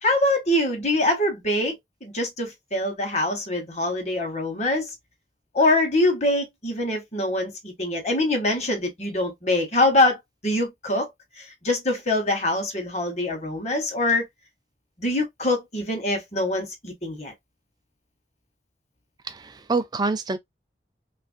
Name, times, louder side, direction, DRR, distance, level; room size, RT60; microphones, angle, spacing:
voice 1, 0.0-4.9 5.5-10.2 10.4-11.1 11.4-14.2 15.0-17.3, left 1 dB, 40° left, 1.0 m, -24 dB
voice 2, 19.2-20.4, right 3 dB, 25° right, 0.4 m, -26 dB
3.0 x 2.5 x 2.4 m
head